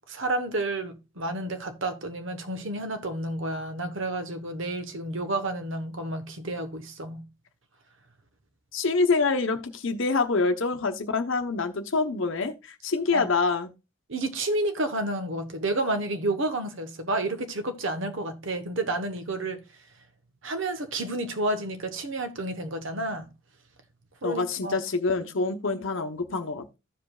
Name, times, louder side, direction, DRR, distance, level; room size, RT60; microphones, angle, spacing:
voice 1, 0.1-7.3 13.1-13.3 14.1-19.6 20.4-23.3 24.2-24.8, right 2 dB, 60° right, 1.0 m, -30 dB
voice 2, 8.7-13.7 24.2-26.8, left 4 dB, 60° left, 0.8 m, -26 dB
15.0 x 5.0 x 2.3 m
head